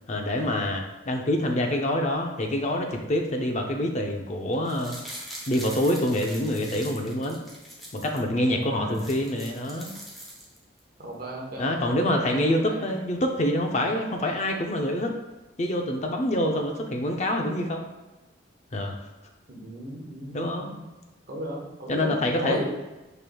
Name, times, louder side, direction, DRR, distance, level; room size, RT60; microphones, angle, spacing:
voice 1, 0.1-5.0 5.5-7.4 7.9-9.9 11.6-15.1 15.6-17.9 18.7-19.0 20.3-20.7 21.9-22.6, left 1 dB, 40° left, 3 dB, 0.5 m, -26 dB
sound 1, 4.5-8.2 8.6-8.7 8.9-10.8 11.1-11.2, equal, ahead, 0.9 m, -42 dB
voice 2, 8.6-9.0 11.0-11.8 12.2-12.9 19.5-20.8 21.3-22.6, equal, 55° right, -2 dB, 1.1 m, -35 dB
5.1 x 4.4 x 2.3 m, 1.1 s
head